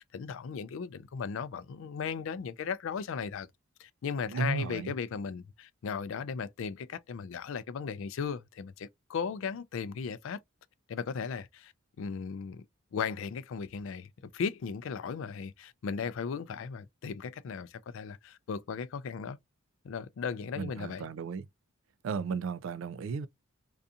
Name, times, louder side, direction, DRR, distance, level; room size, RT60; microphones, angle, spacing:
voice 1, 0.0-3.5 3.8-10.4 10.9-11.7 12.0-12.6 12.9-19.4 19.8-21.1, left 6 dB, 65° left, 0.3 m, -36 dB
voice 2, 4.3-4.9 20.6-21.5 22.0-23.3, right 5 dB, 65° right, 0.3 m, -34 dB
2.6 x 2.3 x 2.4 m
head